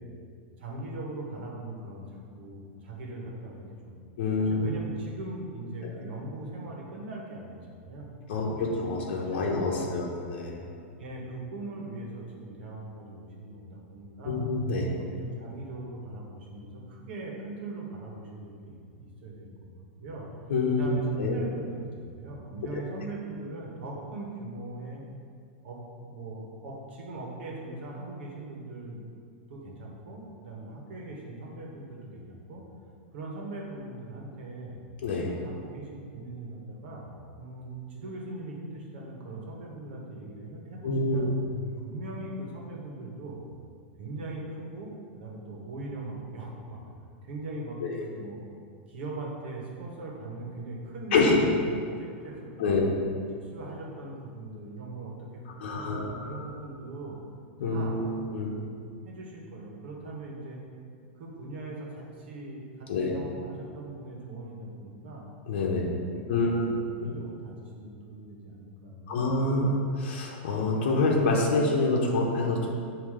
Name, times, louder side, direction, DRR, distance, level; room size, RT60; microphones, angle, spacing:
voice 1, 0.6-4.0 4.4-8.7 9.3-10.0 11.0-14.4 15.1-19.7 20.0-20.3 20.7-25.0 25.6-32.7 33.1-34.8 35.1-37.1 37.4-41.3 41.8-43.4 44.0-46.9 47.2-48.4 48.9-52.8 53.4-57.2 57.6-58.7 59.0-60.6 61.0-65.3 65.6-69.5, right 2 dB, 65° right, -2 dB, 1.3 m, -40 dB
voice 2, 4.2-4.7 5.8-5.9 8.3-10.6 14.2-15.0 20.5-20.9 21.2-21.4 22.7-22.8 35.0-35.3 40.8-41.6 47.8-48.0 51.1-51.4 52.6-52.9 55.6-56.5 57.6-58.5 62.9-63.2 65.5-65.9 66.3-66.7 67.0-67.1 69.1-72.7, left 3 dB, 65° left, -3 dB, 0.9 m, -27 dB
7.4 x 2.9 x 4.9 m, 2.3 s
supercardioid pair, 175°, 6 cm